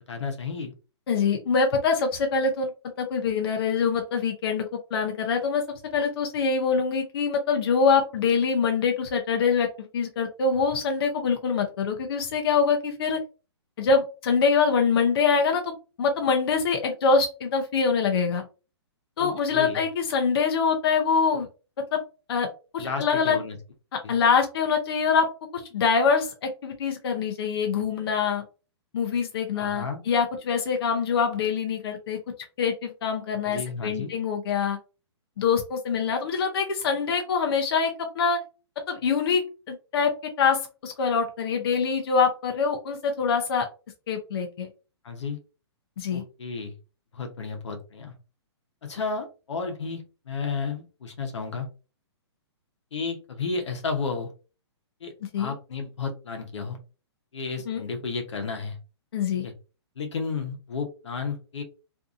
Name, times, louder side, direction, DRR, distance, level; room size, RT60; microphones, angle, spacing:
voice 1, 0.1-0.7 19.2-19.8 22.8-23.6 24.0-24.1 29.5-30.0 33.4-34.1 45.0-45.4 46.1-46.7 47.1-48.1 48.8-51.7 52.9-54.3 55.0-56.8 57.3-58.8 59.3-59.5 60.0-61.6, left 4 dB, 85° left, 4 dB, 0.9 m, -32 dB
voice 2, 1.1-2.7 3.0-4.7 4.9-5.6 5.9-13.2 13.8-15.7 16.0-18.4 19.2-21.5 21.8-22.0 22.3-22.5 22.7-23.4 24.1-25.3 25.5-28.4 28.9-32.2 32.6-34.8 35.4-38.4 38.9-43.7 44.1-44.7 46.0-46.2 55.3-55.5 57.7-57.8 59.1-59.4, left 5 dB, 60° left, 3 dB, 0.6 m, -24 dB
2.6 x 2.5 x 2.4 m, 0.33 s
hypercardioid pair, 160°, 14 cm